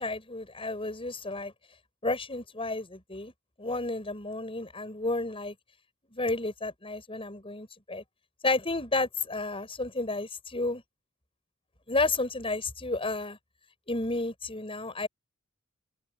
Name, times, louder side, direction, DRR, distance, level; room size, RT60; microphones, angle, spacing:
voice 1, 0.0-1.5 2.0-3.3 3.6-5.5 6.1-8.0 8.4-10.8 11.9-13.4 13.9-15.1, left 2 dB, 25° left, 7.2 m, -31 dB
open air
head